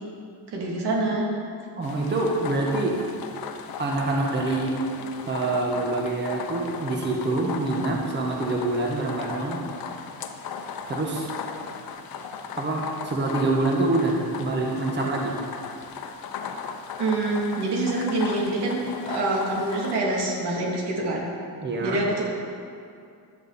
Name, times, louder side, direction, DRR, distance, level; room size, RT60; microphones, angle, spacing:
voice 1, 0.5-1.3 17.0-21.3 21.8-22.3, right 2 dB, 90° right, -3 dB, 3.1 m, -26 dB
sound 1, 1.8-20.0, left 6 dB, 65° left, 1.0 m, -37 dB
voice 2, 1.8-3.0 3.8-4.7 5.3-9.6 10.9-11.3 12.6-15.3 21.6-22.0, right 2 dB, 25° right, -1 dB, 1.5 m, -26 dB
15.5 x 10.5 x 4.3 m, 2.4 s
cardioid pair, 155°, 39 cm